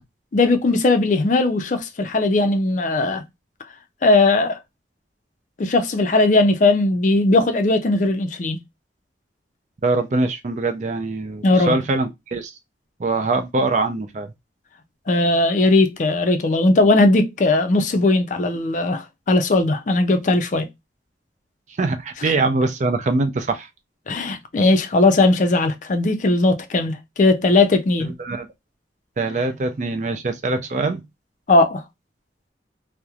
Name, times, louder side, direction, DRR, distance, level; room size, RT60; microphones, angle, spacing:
voice 1, 0.3-3.2 4.0-4.6 5.6-8.6 11.4-11.7 15.1-20.7 24.1-28.1 31.5-31.8, left 2 dB, 45° left, 0.4 m, -18 dB
voice 2, 9.8-12.5 13.0-14.3 21.8-23.7 28.2-28.5 29.2-31.0, right 3 dB, 40° right, 0.4 m, -23 dB
2.9 x 2.1 x 2.3 m
head